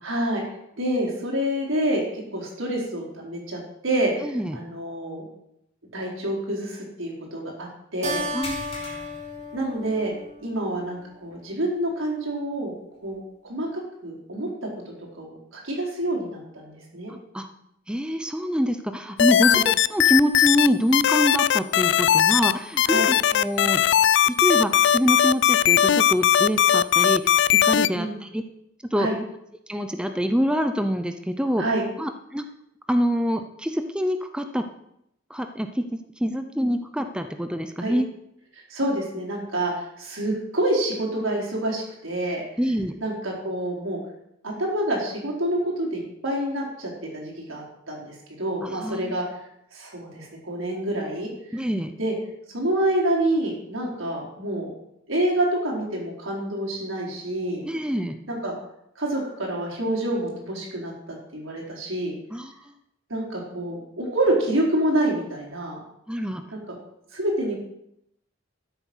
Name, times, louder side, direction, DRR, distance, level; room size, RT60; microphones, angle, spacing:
voice 1, 0.0-0.4 0.8-5.2 5.9-8.2 9.5-10.1 10.4-12.7 13.0-17.1 19.4-19.6 22.8-23.1 27.9-28.1 29.0-29.1 31.6-31.8 37.8-37.9 38.5-42.4 43.0-44.0 44.4-49.2 49.7-51.6 52.0-52.1 52.5-54.7 55.1-57.6 58.3-58.5 59.0-62.1 63.1-65.8 66.5-66.8 67.1-67.5, right 1 dB, 85° right, -2 dB, 4.6 m, -27 dB
voice 2, 4.2-4.6 8.3-8.6 17.3-17.5 17.9-23.8 24.3-27.2 27.6-28.4 28.9-29.1 29.7-31.6 32.0-32.4 32.9-34.6 35.3-35.8 36.2-38.0 42.6-42.9 48.8-49.2 51.5-51.9 57.6-58.2 62.3-62.5 66.1-66.4, equal, 5° right, 7 dB, 0.7 m, -25 dB
Keyboard (musical), 8.0-10.9, equal, 35° right, 2.3 m, -34 dB
sound 1, 8.4-10.3 10.7-10.9 11.3-11.4 13.1-13.2, left 2 dB, 30° left, 3.1 m, -41 dB
sound 2, 19.2-20.7 20.9-22.5 22.8-27.9, left 10 dB, 60° left, 0.4 m, -18 dB
13.0 x 8.2 x 6.3 m, 0.78 s
head